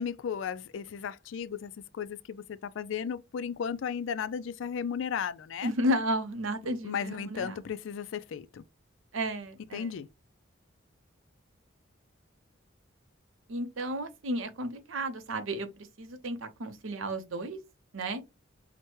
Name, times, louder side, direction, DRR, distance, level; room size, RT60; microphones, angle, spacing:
voice 1, 0.0-5.7 6.8-8.6 9.7-10.1, left 7 dB, 70° left, 0.3 m, -35 dB
voice 2, 5.6-7.7 9.1-10.0 13.5-17.6 17.9-18.2, equal, 85° right, 0.7 m, -33 dB
5.9 x 2.1 x 3.0 m
head